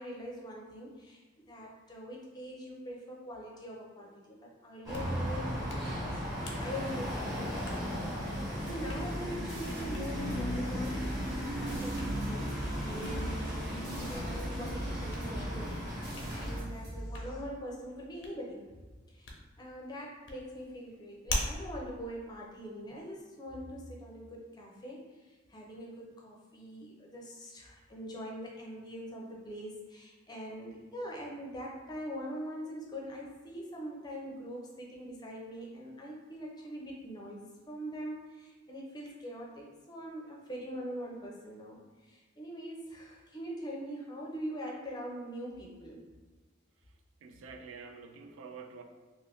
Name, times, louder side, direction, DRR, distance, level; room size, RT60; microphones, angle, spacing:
voice 1, 0.0-7.6 8.6-18.6 19.1-19.3 19.6-46.1, equal, 20° left, -2 dB, 0.5 m, -43 dB
Hands, 4.7-23.2, left 2 dB, 70° left, 0.6 m, -46 dB
sound 1, 4.9-16.6, equal, 20° right, 1.2 m, -36 dB
sound 2, 8.7-17.9, equal, 60° right, 1.0 m, -42 dB
voice 2, 47.2-48.8, right 5 dB, 85° right, 5 dB, 0.3 m, -47 dB
2.5 x 2.5 x 3.4 m, 1.3 s
head